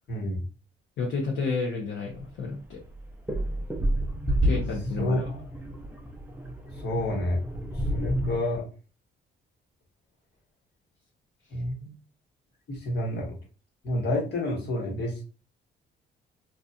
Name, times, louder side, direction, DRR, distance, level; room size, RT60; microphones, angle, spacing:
voice 1, 0.1-0.4 5.0-5.4 6.8-7.4 7.9-8.7 11.5-11.9 12.7-13.3 13.8-15.2, left 1 dB, 60° left, -1 dB, 1.1 m, -29 dB
voice 2, 1.0-2.8 4.4-5.3, left 4 dB, 75° left, -2 dB, 0.7 m, -30 dB
sound 1, 2.1-2.3 2.8-8.4, equal, 10° right, 0.5 m, -29 dB
2.8 x 2.3 x 2.3 m, 0.34 s
cardioid pair, 90°, 20 cm